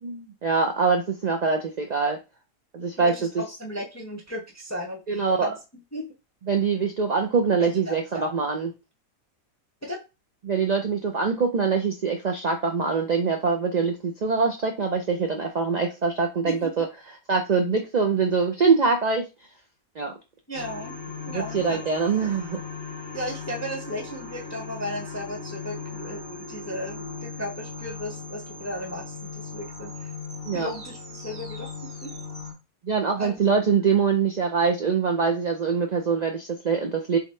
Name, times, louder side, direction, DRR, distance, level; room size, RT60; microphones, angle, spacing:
voice 1, 0.0-2.2 2.7-3.4 5.1-5.5 6.5-8.7 10.4-16.9 17.3-19.3 20.0-20.1 21.3-22.6 30.5-30.7 32.8-37.2, right 5 dB, 85° right, 3 dB, 0.3 m, -24 dB
voice 2, 3.0-5.5 5.9-6.1 7.6-8.3 9.8-10.0 16.5-16.7 20.5-21.0 21.3-21.8 22.1-22.2 23.1-30.1 30.5-32.1 33.2-33.4 33.8-33.9, equal, 25° left, 2 dB, 0.3 m, -35 dB
sound 1, 20.5-32.5, left 4 dB, 45° right, 1.1 m, -38 dB
3.9 x 3.1 x 3.1 m, 0.27 s
omnidirectional pair, 1.5 m